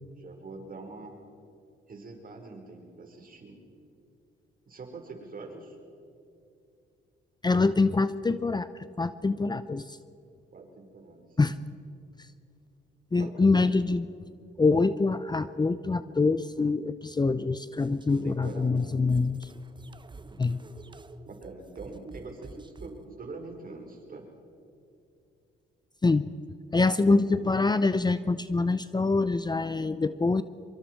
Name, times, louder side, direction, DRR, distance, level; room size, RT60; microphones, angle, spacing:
voice 1, 0.2-1.1 1.9-3.6 4.7-5.8 10.5-11.6 13.1-13.7 18.1-18.9 21.3-24.3, right 3 dB, 45° right, 2 dB, 4.9 m, -43 dB
voice 2, 7.4-8.7 9.0-10.0 11.4-11.6 13.1-14.0 14.6-19.5 20.4-20.6 26.0-26.3 26.7-30.4, left 3 dB, 20° left, 13 dB, 0.7 m, -25 dB
sound 1, 17.8-23.1, right 3 dB, 25° right, 1.0 m, -49 dB
25.0 x 23.5 x 4.7 m, 2.6 s
cardioid pair, 80°, 20 cm